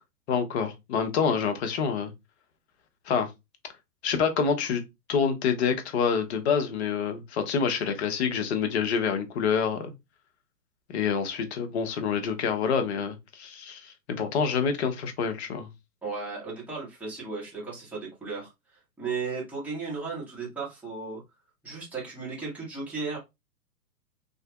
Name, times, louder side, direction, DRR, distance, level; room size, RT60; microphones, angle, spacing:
voice 1, 0.3-2.1 3.1-3.3 4.0-4.8 5.1-9.9 10.9-15.7, left 6 dB, 45° left, 0.7 m, -27 dB
voice 2, 16.0-21.2 21.6-23.2, right 4 dB, 5° right, 1.2 m, -35 dB
2.8 x 2.5 x 2.3 m
hypercardioid pair, 120°, 48 cm